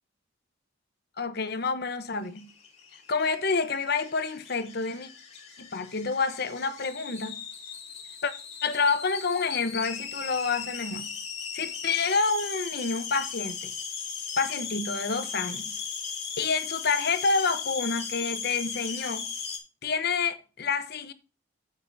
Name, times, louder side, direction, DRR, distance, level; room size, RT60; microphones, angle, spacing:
voice 1, 1.2-2.5 3.1-5.1 5.6-7.4 8.2-8.3 8.6-11.1 11.5-13.7 14.4-15.8 16.4-19.3 19.8-21.1, left 4 dB, 55° left, 0.9 m, -28 dB
sound 1, 2.3-19.6, left 6 dB, 35° left, 2.1 m, -37 dB
8.5 x 8.3 x 2.7 m
head